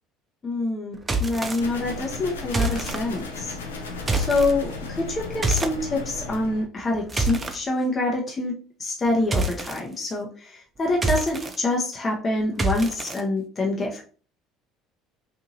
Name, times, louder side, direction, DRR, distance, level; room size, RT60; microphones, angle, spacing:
voice 1, 0.4-0.9 1.2-3.6 4.1-14.0, left 2 dB, 30° left, -1 dB, 0.6 m, -26 dB
sound 1, 1.0-1.6 2.5-3.0 4.0-4.5 5.4-5.8 6.8-7.6 9.3-9.8 10.9-11.6 12.6-13.2, right 2 dB, 25° right, 0.5 m, -26 dB
sound 2, 1.6-6.7, left 3 dB, 90° left, 0.4 m, -35 dB
2.7 x 2.6 x 2.7 m, 0.41 s
hypercardioid pair, 70°, 0 cm